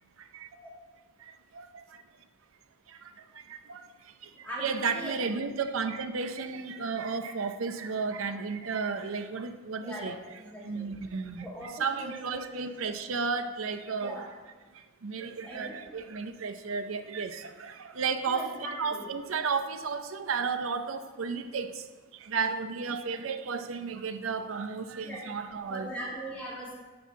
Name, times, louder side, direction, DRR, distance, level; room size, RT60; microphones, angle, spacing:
voice 1, 0.2-0.5 1.2-2.0 2.9-10.2 10.6-14.3 14.7-18.5 18.8-25.9, right 5 dB, 90° right, 8 dB, 0.6 m, -33 dB
voice 2, 4.4-5.2 9.8-10.9 11.4-12.7 13.9-14.2 15.4-15.8 18.3-19.1 25.0-25.2 25.7-26.7, right 1 dB, 5° left, -7 dB, 2.3 m, -40 dB
8.5 x 4.6 x 6.9 m, 1.3 s
head